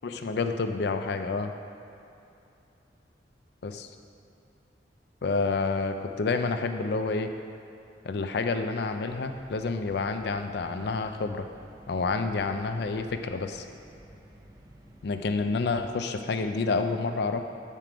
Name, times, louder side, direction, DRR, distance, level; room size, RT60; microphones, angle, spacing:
voice 1, 0.0-1.5 3.6-3.9 5.2-7.3 8.0-11.5 11.9-13.7 15.0-17.4, left 4 dB, 60° left, 7 dB, 0.4 m, -29 dB
sound 1, 9.1-15.7, right 1 dB, 20° right, 0.5 m, -52 dB
7.5 x 4.5 x 5.0 m, 2.8 s
head